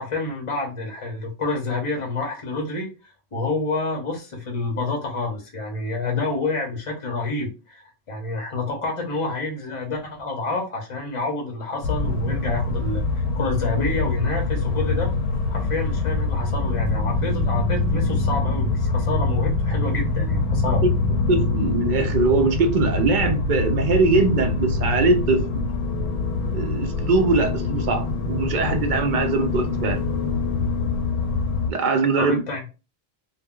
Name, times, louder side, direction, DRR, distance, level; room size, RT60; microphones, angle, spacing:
voice 1, 0.0-15.2 15.5-20.9 32.2-32.7, left 3 dB, 35° left, 0.6 m, -28 dB
sound 1, 11.8-31.7, left 3 dB, 70° left, 0.8 m, -24 dB
voice 2, 21.3-25.7 26.5-30.0 31.7-32.4, right 3 dB, 55° right, 0.6 m, -21 dB
2.1 x 2.0 x 3.6 m
omnidirectional pair, 1.1 m